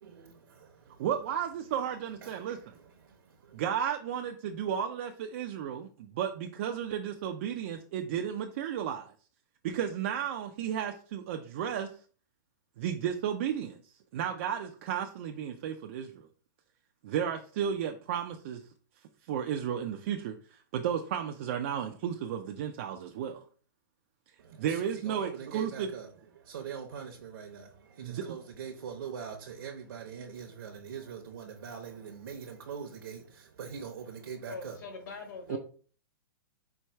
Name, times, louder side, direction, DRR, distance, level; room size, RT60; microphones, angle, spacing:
voice 1, 0.0-1.1 2.2-3.6 24.4-34.8, right 7 dB, 70° right, 0.8 m, -43 dB
voice 2, 1.0-2.6 3.5-9.1 9.6-11.9 12.8-13.8 14.1-16.3 17.0-18.6 19.3-23.4 24.6-25.9 28.0-28.2 35.5-35.6, right 9 dB, 35° right, 0.4 m, -33 dB
voice 3, 34.5-35.6, left 4 dB, 55° left, 1.7 m, -42 dB
4.5 x 2.2 x 4.4 m
hypercardioid pair, 160°, 12 cm